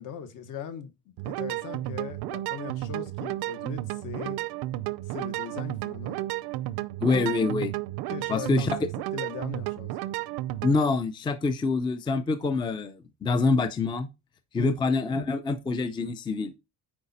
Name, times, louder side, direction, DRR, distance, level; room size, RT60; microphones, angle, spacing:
voice 1, 0.0-4.4 5.0-6.2 8.1-9.9 14.6-14.8, left 8 dB, 55° left, 1.3 m, -39 dB
sound 1, 1.2-10.8, right 16 dB, 80° right, 0.6 m, -33 dB
voice 2, 7.0-7.7 8.3-8.8 10.6-14.1 14.5-16.5, left 3 dB, 15° left, 0.4 m, -26 dB
8.7 x 5.0 x 4.1 m
cardioid pair, 175°, 37 cm